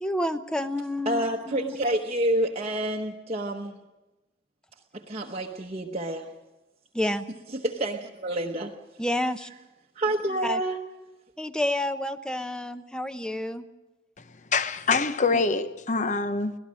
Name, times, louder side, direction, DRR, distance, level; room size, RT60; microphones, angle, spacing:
voice 1, 0.0-1.8 6.9-7.2 9.0-9.5 10.4-10.6 11.4-13.6, left 1 dB, 5° left, 0.7 m, -29 dB
voice 2, 1.1-3.8 4.9-6.3 7.5-8.8 10.0-10.8 15.3-15.4, right 1 dB, 35° right, 1.0 m, -28 dB
voice 3, 14.5-16.5, left 4 dB, 40° left, 0.9 m, -25 dB
25.0 x 18.0 x 6.3 m
head